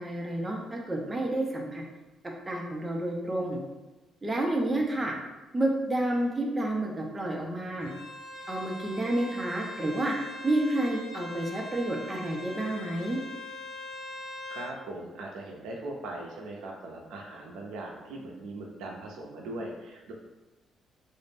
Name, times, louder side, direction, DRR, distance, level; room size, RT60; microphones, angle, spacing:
voice 1, 0.0-1.8 2.5-3.6 4.2-5.1 5.5-7.9 8.5-10.1 10.4-13.2, right 1 dB, 20° right, 0 dB, 0.5 m, -30 dB
Bowed string instrument, 7.8-14.7, left 2 dB, 85° left, 0.8 m, -42 dB
voice 2, 14.5-20.1, right 2 dB, 85° right, -1 dB, 0.5 m, -40 dB
2.5 x 2.0 x 3.3 m, 1.1 s
cardioid pair, 90°, 0 cm